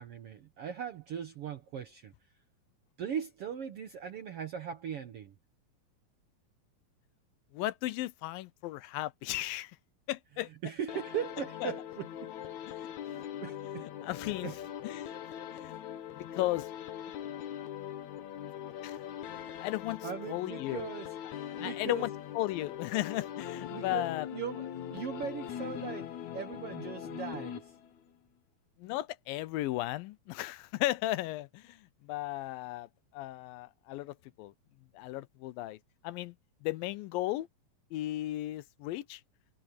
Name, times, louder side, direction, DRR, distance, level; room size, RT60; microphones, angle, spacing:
voice 1, 0.0-2.1 3.0-5.3 10.5-12.3 13.0-14.6 16.3-16.4 20.0-21.1 21.6-22.1 23.7-27.7, right 8 dB, 70° right, 1.4 m, -39 dB
voice 2, 7.5-9.8 10.1-10.5 11.6-11.7 12.8-12.9 14.0-14.5 14.8-15.1 15.5-15.8 16.1-16.7 18.8-19.0 19.6-20.0 20.3-20.9 21.6-22.1 22.4-24.3 28.8-34.5 34.9-35.8 36.0-36.4 36.6-37.5 37.9-39.2, left 16 dB, 85° left, 2.5 m, -35 dB
sound 1, 10.9-28.1, left 10 dB, 65° left, 2.3 m, -41 dB
omnidirectional pair, 4.0 m